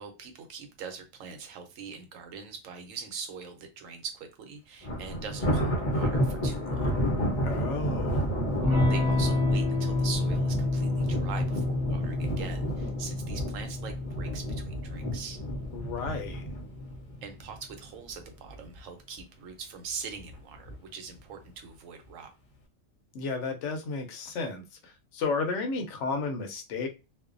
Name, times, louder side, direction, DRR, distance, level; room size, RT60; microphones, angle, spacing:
voice 1, 0.0-6.9 8.9-15.4 17.2-22.3, right 6 dB, 80° right, 1.0 m, -42 dB
Thunder, 4.8-18.1 18.5-18.8 19.2-19.3 20.2-20.7, equal, 40° left, 0.5 m, -31 dB
voice 2, 7.4-8.3 15.7-16.4 23.1-26.9, left 4 dB, 70° left, 0.8 m, -33 dB
Electric guitar / Strum, 8.6-16.9, left 2 dB, 25° right, 0.8 m, -30 dB
2.5 x 2.1 x 2.4 m
omnidirectional pair, 1.3 m